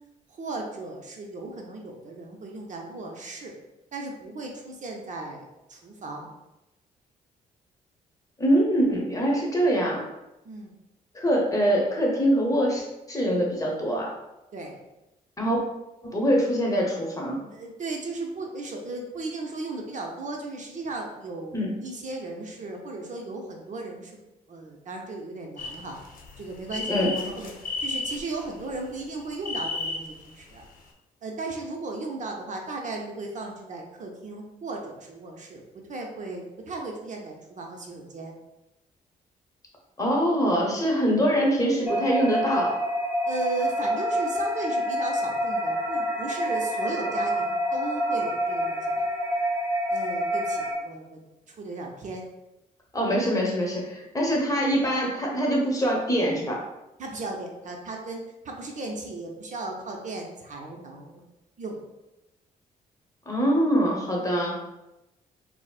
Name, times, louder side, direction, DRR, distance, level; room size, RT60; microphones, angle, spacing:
voice 1, 0.4-3.6 3.9-6.3 10.4-10.7 14.5-14.8 17.5-24.1 24.5-26.0 26.4-27.5 27.8-30.6 31.2-35.6 35.9-38.3 43.3-49.0 49.9-51.2 51.5-52.3 57.0-61.2 61.6-61.8, right 3 dB, 50° right, 1 dB, 0.6 m, -36 dB
voice 2, 8.4-10.1 11.1-14.1 15.4-15.6 16.0-17.4 21.5-21.7 26.9-27.1 40.0-42.8 52.9-56.6 63.3-64.6, equal, 20° left, -2 dB, 1.0 m, -24 dB
sound 1, 25.6-28.7 29.2-30.3 30.6-30.7, left 3 dB, 60° left, 0.7 m, -33 dB
sound 2, 41.9-50.7, equal, 10° right, 0.7 m, -27 dB
4.0 x 2.0 x 2.3 m, 0.96 s
supercardioid pair, 60°, 16 cm